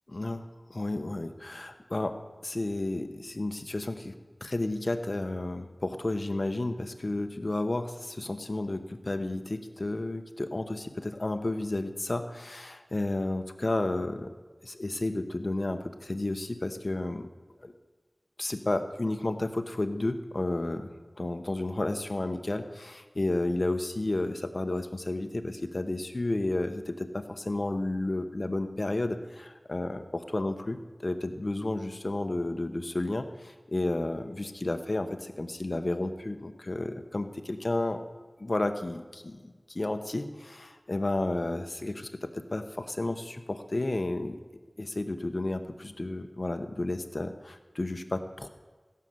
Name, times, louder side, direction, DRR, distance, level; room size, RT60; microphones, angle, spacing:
voice 1, 0.1-2.1 2.4-4.1 4.4-14.3 14.6-17.3 17.6-17.7 18.4-20.9 21.2-38.0 38.4-44.4 44.8-48.5, left 2 dB, 55° left, 7 dB, 1.1 m, -32 dB
15.5 x 6.7 x 7.9 m, 1.4 s
wide cardioid pair, 50°, 0 cm